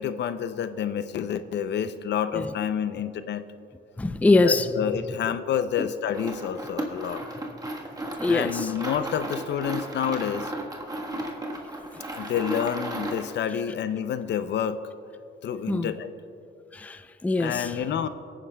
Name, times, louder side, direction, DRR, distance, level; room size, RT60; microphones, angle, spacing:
voice 1, 0.0-3.4 4.4-7.2 8.3-10.5 12.2-14.8 15.4-16.1 17.4-18.1, left 8 dB, 60° left, 0.5 m, -28 dB
voice 2, 4.0-4.7 5.8-5.9 8.2-8.7 15.7-15.9 16.7-17.8, left 3 dB, 5° left, 0.4 m, -23 dB
sound 1, 6.1-13.4, right 1 dB, 20° right, 1.3 m, -35 dB
19.0 x 9.8 x 2.3 m
cardioid pair, 90°, 20 cm